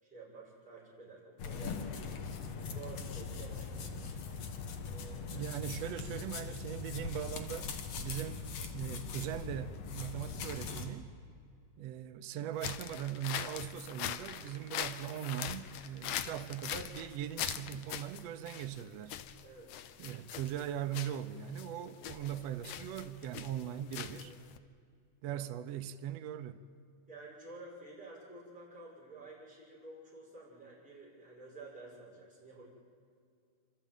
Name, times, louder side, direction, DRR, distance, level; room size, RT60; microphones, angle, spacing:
voice 1, 0.0-2.0 2.5-4.2 4.8-5.5 19.4-19.8 24.2-24.4 25.3-25.4 27.1-32.6, right 3 dB, ahead, 5.9 m, -51 dB
sound 1, 1.4-10.9, left 5 dB, 55° left, 2.4 m, -41 dB
voice 2, 5.3-8.4 8.7-11.1 11.8-19.2 20.0-24.3 25.2-26.6, right 10 dB, 75° right, 1.5 m, -40 dB
sound 2, 12.5-24.6, left 11 dB, 75° left, 1.7 m, -42 dB
28.0 x 13.0 x 9.1 m
omnidirectional pair, 3.8 m